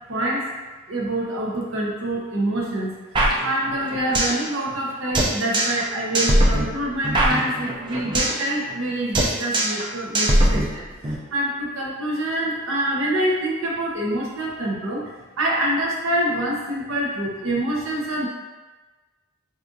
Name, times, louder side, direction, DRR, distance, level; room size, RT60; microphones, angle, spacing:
voice 1, 0.1-0.4 0.9-15.0 15.4-18.3, right 1 dB, 70° right, -3 dB, 0.7 m, -26 dB
sound 1, 3.1-4.4 4.7-4.8 5.1-5.9 6.1-8.4 8.7-8.9 9.1-9.9 10.1-11.1, right 1 dB, 20° right, 0.3 m, -21 dB
4.1 x 2.4 x 2.5 m, 1.2 s
head